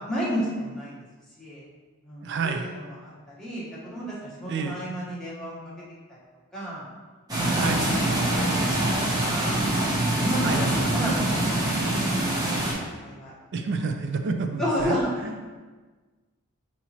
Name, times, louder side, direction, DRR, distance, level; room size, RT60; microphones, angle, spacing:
voice 1, 0.1-0.9 1.4-1.6 2.0-5.6 6.1-6.2 6.5-6.8 7.3-9.6 10.1-12.6 13.0-13.3 13.6-13.9 14.6-15.4, equal, 5° left, -9 dB, 1.0 m, -32 dB
voice 2, 2.2-2.7 4.5-4.8 7.5-7.9 10.4-10.6 13.5-15.0 15.2-15.3, right 4 dB, 50° right, 6 dB, 0.3 m, -29 dB
sound 1, 7.3-12.7, right 1 dB, 15° right, 0.8 m, -24 dB
5.6 x 2.9 x 2.8 m, 1.3 s
head